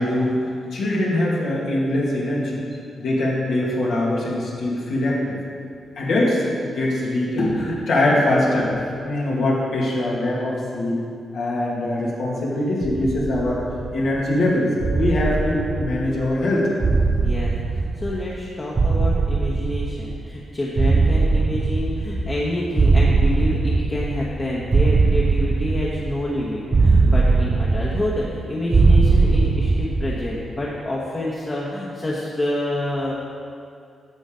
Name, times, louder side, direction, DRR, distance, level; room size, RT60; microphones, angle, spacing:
voice 1, 0.0-2.6 3.0-5.4 6.0-8.8 9.0-11.0 11.3-13.6 13.9-16.7, left 1 dB, 75° left, -5 dB, 2.1 m, -22 dB
sound 1, 12.8-14.2 14.8-16.4 16.8-18.4 18.8-20.3 20.8-22.4 22.8-24.4 24.7-26.3 26.7-28.4 28.7-30.3, right 3 dB, 35° right, 0.4 m, -20 dB
voice 2, 17.2-33.1, left 1 dB, 30° left, -5 dB, 1.2 m, -27 dB
11.0 x 7.1 x 3.8 m, 2.3 s
cardioid pair, 115°, 0 cm